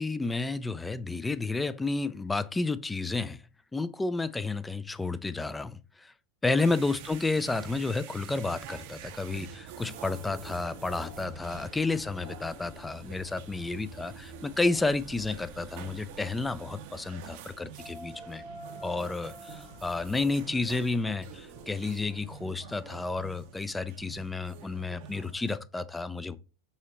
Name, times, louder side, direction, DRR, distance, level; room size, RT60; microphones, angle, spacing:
voice 1, 0.0-3.4 3.7-6.1 6.4-18.4 18.8-26.4, left 3 dB, 10° left, 0.3 m, -31 dB
sound 1, 6.6-25.6, right 9 dB, 50° right, 0.5 m, -47 dB
sound 2, 9.8-22.2, equal, 40° left, 1.0 m, -49 dB
5.5 x 2.9 x 2.9 m
figure-of-eight pair, 85°, 0 cm